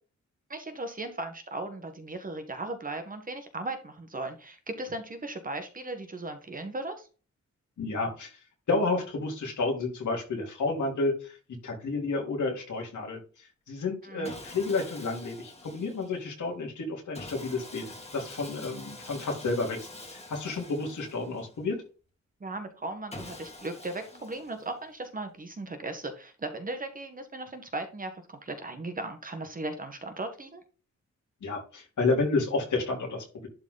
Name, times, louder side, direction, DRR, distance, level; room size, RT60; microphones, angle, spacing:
voice 1, 0.5-7.1 14.0-14.3 22.4-30.6, right 2 dB, 30° right, 7 dB, 1.4 m, -37 dB
voice 2, 7.8-8.4 8.7-19.8 20.1-21.8 31.4-33.5, left 3 dB, 85° left, 0 dB, 3.5 m, -31 dB
Sawing, 14.2-16.3 17.1-21.7 23.1-24.9, left 2 dB, 20° left, 2.1 m, -46 dB
11.5 x 4.0 x 4.0 m, 0.36 s
wide cardioid pair, 155°, 29 cm